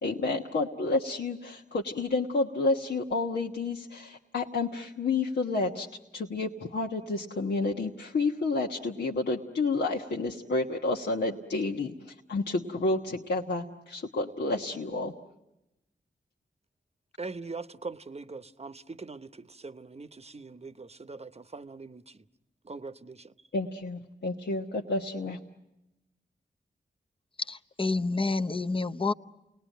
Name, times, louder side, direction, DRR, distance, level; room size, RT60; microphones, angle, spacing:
voice 1, 0.0-5.9 6.1-15.1 23.5-25.4, left 3 dB, 75° left, 1.3 m, -30 dB
voice 2, 17.2-22.2 22.6-23.3, right 3 dB, 35° right, 0.9 m, -42 dB
voice 3, 27.5-29.1, left 3 dB, 30° left, 0.9 m, -28 dB
29.0 x 20.0 x 9.2 m
cardioid pair, 45°, 18 cm